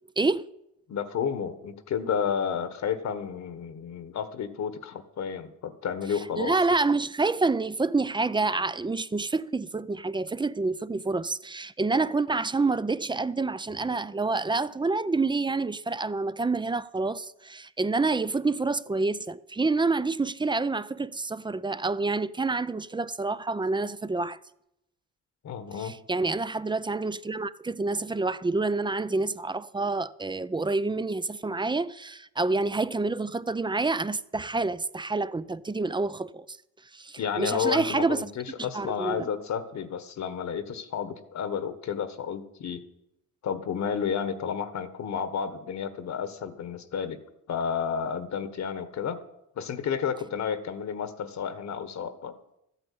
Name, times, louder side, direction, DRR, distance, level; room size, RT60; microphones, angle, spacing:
voice 1, 0.9-6.6 25.4-26.0 37.2-42.8 43.4-47.2 47.5-49.2 49.6-52.4, left 7 dB, 65° left, 1.5 m, -31 dB
voice 2, 6.1-24.4 25.8-36.6 36.9-38.3 38.6-39.3, right 3 dB, 15° right, 0.5 m, -28 dB
13.5 x 9.0 x 8.6 m
cardioid pair, 90°, 30 cm